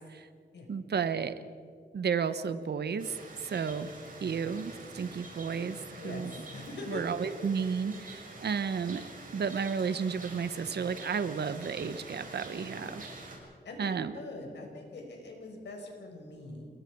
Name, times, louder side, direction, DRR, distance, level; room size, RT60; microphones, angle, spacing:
voice 1, 0.7-1.3 1.9-3.9 4.2-6.3 6.9-9.0 9.3-13.1 13.8-14.1, right 6 dB, 70° right, 12 dB, 1.1 m, -32 dB
sound 1, 3.0-13.4, right 2 dB, 50° right, 6.0 m, -47 dB
voice 2, 6.0-7.2 12.5-13.1 13.6-16.7, left 2 dB, 85° left, 1 dB, 5.0 m, -43 dB
28.0 x 21.5 x 4.7 m, 2.2 s
wide cardioid pair, 95°, 18 cm